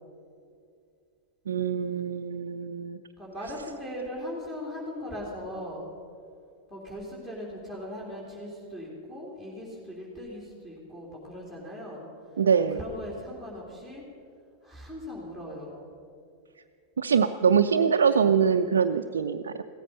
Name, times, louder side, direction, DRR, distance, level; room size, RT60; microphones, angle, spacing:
voice 1, 1.5-3.0 12.4-12.8 17.0-19.6, right 6 dB, 65° right, 5 dB, 0.4 m, -24 dB
voice 2, 3.2-5.9 6.7-12.0 12.7-14.0 14.6-15.8, equal, 15° left, -6 dB, 3.3 m, -39 dB
16.0 x 14.0 x 5.5 m, 2.4 s
figure-of-eight pair, 90°, 0 cm